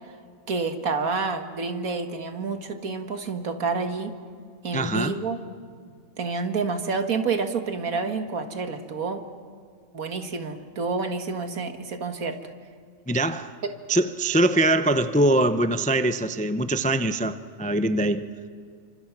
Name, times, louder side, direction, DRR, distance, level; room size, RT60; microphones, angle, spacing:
voice 1, 0.5-4.1 4.6-5.4 6.2-9.2 9.9-12.4 13.6-13.7, right 4 dB, 85° right, 2.0 m, -28 dB
voice 2, 4.7-5.1 13.1-13.5 13.9-18.3, right 1 dB, 15° left, 0.3 m, -23 dB
28.5 x 25.5 x 6.0 m
omnidirectional pair, 1.4 m